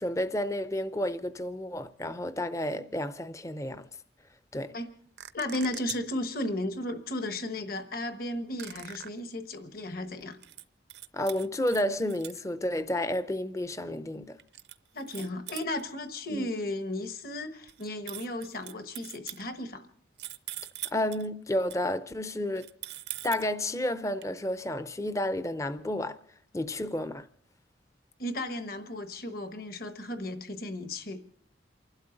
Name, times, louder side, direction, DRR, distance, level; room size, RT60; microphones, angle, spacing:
voice 1, 0.0-3.9 4.5-4.7 11.1-14.4 16.3-16.4 20.9-22.7 23.2-26.2 26.5-27.3 30.1-30.2, left 1 dB, 15° left, 0.5 m, -31 dB
sound 1, 5.2-6.2 8.6-9.1 10.2-10.6 10.9-12.4 14.4-15.8 17.7-19.4 20.2-21.3 21.7-21.8 22.5-23.5 24.2-24.3, right 13 dB, 60° right, 0.6 m, -41 dB
voice 2, 5.3-10.4 14.9-19.9 28.2-31.2, left 1 dB, 50° left, 1.2 m, -35 dB
28.5 x 12.0 x 3.9 m
head